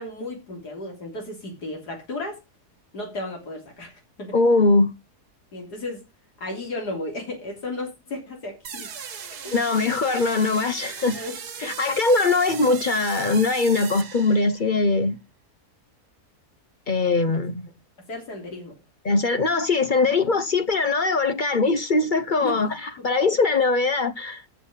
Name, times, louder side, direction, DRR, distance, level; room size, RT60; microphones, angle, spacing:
voice 1, 0.0-2.4 2.9-4.4 5.5-6.0 6.4-8.9 9.4-9.6 9.9-10.0 11.1-11.4 11.6-12.1 18.1-18.7 22.4-22.6 23.0-23.1, left 2 dB, 90° left, 3.8 m, -34 dB
voice 2, 4.3-4.9 9.5-11.2 11.6-15.2 16.9-17.7 19.0-24.4, left 3 dB, 45° left, 0.7 m, -21 dB
sound 1, 8.6-14.8, right 7 dB, 75° right, 1.9 m, -38 dB
9.1 x 7.2 x 7.2 m
omnidirectional pair, 1.7 m